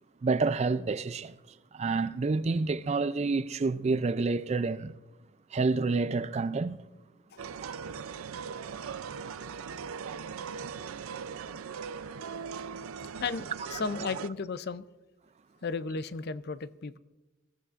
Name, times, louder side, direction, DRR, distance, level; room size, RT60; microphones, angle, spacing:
voice 1, 0.2-1.4 1.7-4.9 5.5-6.8 7.6-7.8 13.7-13.8, right 3 dB, 30° right, 0.3 m, -28 dB
sound 1, 7.4-14.3, right 6 dB, 90° right, 0.5 m, -39 dB
voice 2, 13.2-14.9 15.6-17.0, left 4 dB, 50° left, 0.5 m, -34 dB
22.0 x 13.5 x 2.5 m
head